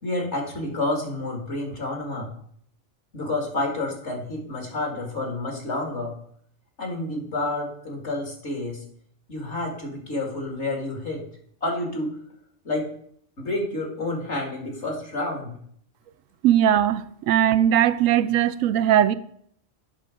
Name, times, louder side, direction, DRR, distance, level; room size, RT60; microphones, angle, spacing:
voice 1, 0.0-2.3 3.1-6.1 6.8-8.8 9.3-11.2 11.6-12.2 12.6-12.9 13.4-15.5, left 2 dB, 60° left, 2.4 m, -29 dB
voice 2, 16.4-19.1, right 10 dB, 80° right, 1.0 m, -19 dB
8.4 x 6.2 x 5.0 m
omnidirectional pair, 1.4 m